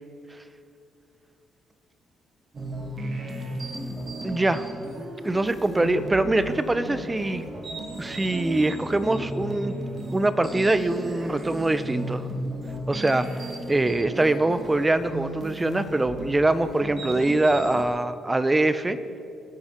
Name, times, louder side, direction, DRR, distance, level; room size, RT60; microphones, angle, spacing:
sound 1, 2.5-17.8, right 1 dB, 40° right, 2.3 m, -35 dB
voice 1, 4.2-7.5 8.0-9.7 10.1-12.3 12.9-13.2 13.7-19.0, right 2 dB, 15° right, 12 dB, 0.8 m, -23 dB
23.0 x 10.0 x 4.5 m, 2.5 s
cardioid pair, 90°, 0 cm